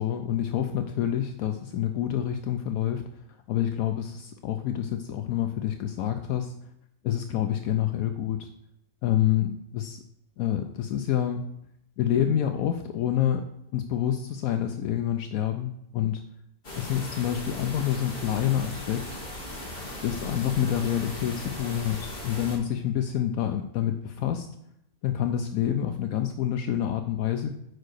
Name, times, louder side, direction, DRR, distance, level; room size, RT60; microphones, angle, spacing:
voice 1, 0.0-6.5 7.0-8.5 9.0-10.0 10.4-11.5 12.0-16.2 16.7-19.1 20.0-24.5 25.0-27.5, left 10 dB, 75° left, 7 dB, 1.0 m, -27 dB
sound 1, 16.6-22.6, left 1 dB, 40° left, 1.9 m, -38 dB
6.5 x 5.0 x 6.4 m, 0.77 s
omnidirectional pair, 1.6 m